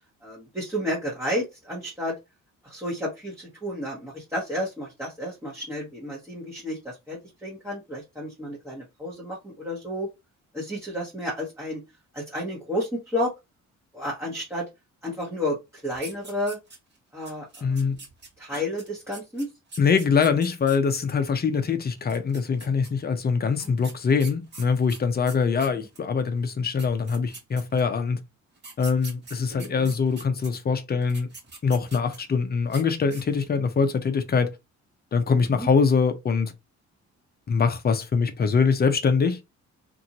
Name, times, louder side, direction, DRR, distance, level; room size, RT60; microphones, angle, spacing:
voice 1, 0.2-2.1 2.6-10.1 10.5-11.8 12.1-13.3 13.9-14.7 15.0-15.6 15.8-16.6 17.1-17.9 18.4-19.5 29.5-29.9 35.6-35.7, left 1 dB, 10° right, 1.1 m, -31 dB
sound 1, 15.9-17.0 17.2-21.0 22.0-22.9 23.6-26.0 26.5-26.6 26.8-28.0 28.6-30.5 31.0-32.3 32.6-32.8 33.1-33.5, right 3 dB, 35° right, 1.3 m, -44 dB
voice 2, 17.6-18.0 18.5-18.6 19.8-28.2 28.8-31.3 31.6-34.5 35.1-36.5 37.5-39.5, left 5 dB, 30° left, 0.6 m, -23 dB
2.6 x 2.6 x 2.8 m
cardioid pair, 90°, 30 cm